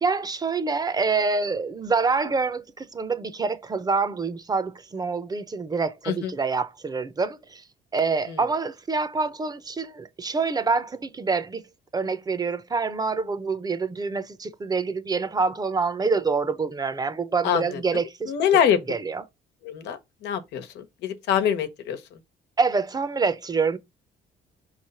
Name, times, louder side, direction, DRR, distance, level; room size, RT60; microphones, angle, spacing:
voice 1, 0.0-7.6 7.9-11.6 11.9-18.3 18.9-19.2 22.6-23.8, right 4 dB, 20° right, 0.7 m, -26 dB
voice 2, 17.4-18.8 19.6-22.0, left 9 dB, 90° left, 1.2 m, -25 dB
5.3 x 3.2 x 5.5 m
cardioid pair, 120°, 17 cm